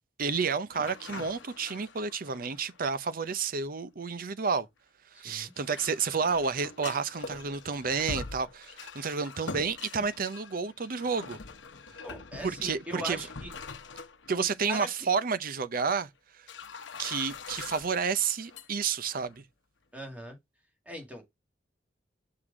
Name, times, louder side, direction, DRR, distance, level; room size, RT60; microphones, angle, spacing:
voice 1, 0.2-4.7 5.2-11.4 12.4-13.3 14.3-16.1 16.4-16.5 17.0-19.4, right 5 dB, 50° right, 0.6 m, -30 dB
sound 1, 0.7-3.3 5.4-14.5 14.8-14.9 15.8-15.9 16.5-18.7 19.0-19.4, left 4 dB, 80° left, 0.9 m, -44 dB
voice 2, 5.1-5.5 12.0-13.5 14.4-14.9 19.9-20.4 20.9-21.2, equal, 10° right, 2.0 m, -40 dB
6.3 x 3.8 x 4.9 m
head